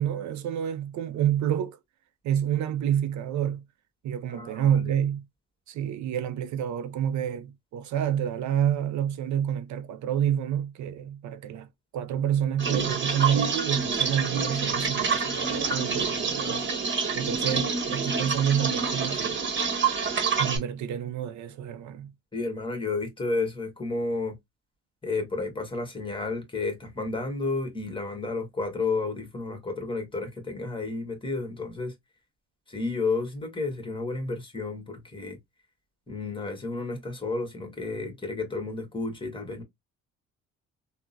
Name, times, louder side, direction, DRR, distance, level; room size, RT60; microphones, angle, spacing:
voice 1, 0.0-1.8 2.2-3.6 4.0-5.2 5.7-11.7 11.9-16.7 17.1-19.4 20.4-22.1, right 9 dB, 70° right, 0.5 m, -28 dB
voice 2, 4.3-4.9 22.3-24.4 25.0-31.9 32.7-35.4 36.1-39.6, left 3 dB, 15° left, 1.3 m, -31 dB
sound 1, 12.6-20.6, right 5 dB, 40° right, 1.0 m, -27 dB
3.4 x 2.1 x 2.6 m
cardioid pair, 90°, 30 cm